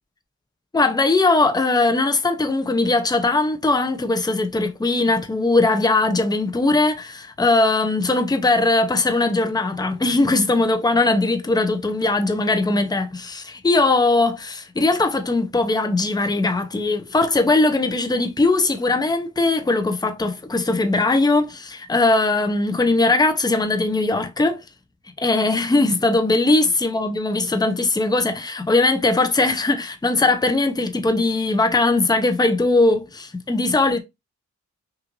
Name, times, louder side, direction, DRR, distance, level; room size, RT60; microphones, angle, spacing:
voice 1, 0.7-24.6 25.2-34.0, left 2 dB, 15° left, 0.6 m, -20 dB
5.8 x 2.5 x 2.6 m
wide cardioid pair, 100°, 31 cm